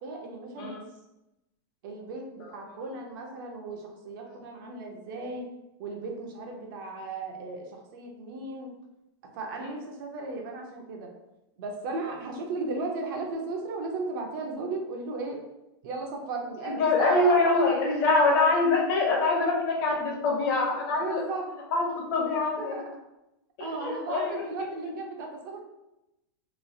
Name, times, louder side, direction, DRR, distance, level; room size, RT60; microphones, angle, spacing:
voice 1, 0.0-0.8 1.8-5.5 5.8-8.7 9.2-11.1 11.6-15.4 15.8-17.5 20.9-21.5 22.6-22.9 23.6-25.6, right 3 dB, 55° right, 1 dB, 0.6 m, -35 dB
voice 2, 16.6-21.2 21.7-22.8 23.6-24.4, left 3 dB, 50° left, -1 dB, 0.9 m, -24 dB
3.0 x 2.3 x 2.6 m, 0.91 s
supercardioid pair, 155°, 14 cm